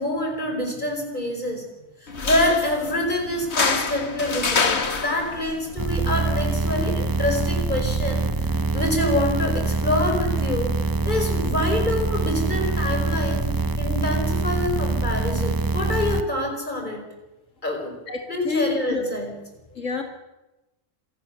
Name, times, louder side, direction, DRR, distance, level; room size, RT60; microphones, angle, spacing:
voice 1, 0.0-1.6 2.0-8.5 8.7-10.7 11.0-13.5 13.8-17.0 17.6-17.9 18.3-19.3, left 1 dB, 40° left, 3 dB, 5.4 m, -26 dB
sound 1, 2.1-9.1, left 4 dB, 60° left, 1.8 m, -29 dB
sound 2, 5.8-16.2, right 3 dB, 20° right, 0.6 m, -24 dB
voice 2, 18.1-19.2 19.8-20.0, left 4 dB, 85° left, 3 dB, 2.4 m, -28 dB
26.5 x 17.0 x 7.0 m, 1.0 s
omnidirectional pair, 1.3 m